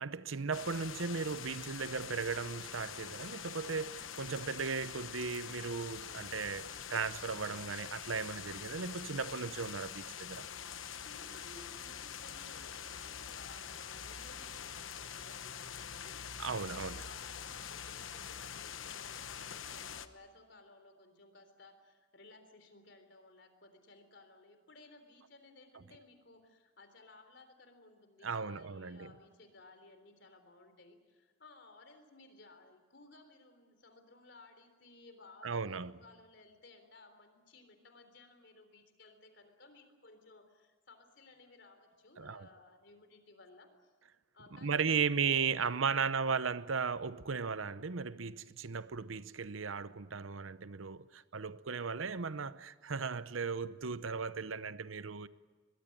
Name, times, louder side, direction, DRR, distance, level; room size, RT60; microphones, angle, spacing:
voice 1, 0.0-10.4 16.4-17.0 28.2-29.1 35.4-35.9 42.2-42.5 44.6-55.3, right 5 dB, 85° right, 0.8 m, -36 dB
sound 1, 0.5-20.1, left 8 dB, 80° left, 1.1 m, -45 dB
voice 2, 10.7-43.9 44.3-46.4, left 2 dB, 60° left, 3.7 m, -59 dB
23.5 x 21.0 x 8.7 m
head